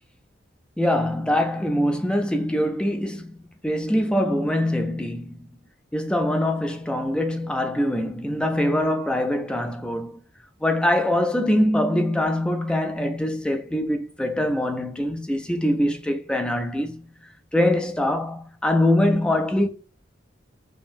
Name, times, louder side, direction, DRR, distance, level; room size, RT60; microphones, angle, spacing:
voice 1, 0.8-3.4 3.6-5.5 5.9-10.2 10.6-17.1 17.5-19.7, left 1 dB, 5° left, 0.3 m, -23 dB
4.8 x 2.6 x 2.5 m
head